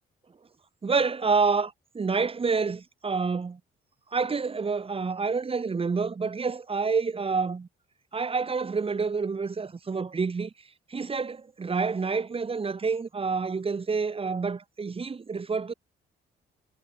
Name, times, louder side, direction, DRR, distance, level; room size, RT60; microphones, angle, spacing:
voice 1, 0.8-3.6 4.1-7.7 8.1-10.5 10.9-15.7, right 4 dB, 30° right, 1.2 m, -28 dB
cardioid pair, 90°, 20 cm